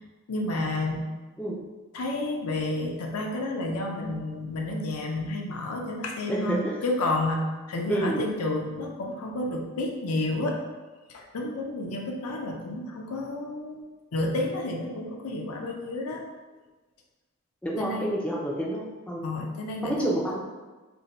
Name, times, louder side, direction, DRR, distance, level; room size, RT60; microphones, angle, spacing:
voice 1, 0.3-1.1 1.9-10.6 11.1-13.8 14.1-16.2 17.8-18.1 19.2-20.1, left 2 dB, 85° left, 1 dB, 0.5 m, -30 dB
voice 2, 6.3-6.6 7.9-8.2 17.6-19.3 19.8-20.4, right 1 dB, 5° left, -4 dB, 0.3 m, -28 dB
2.6 x 2.1 x 4.0 m, 1.2 s
head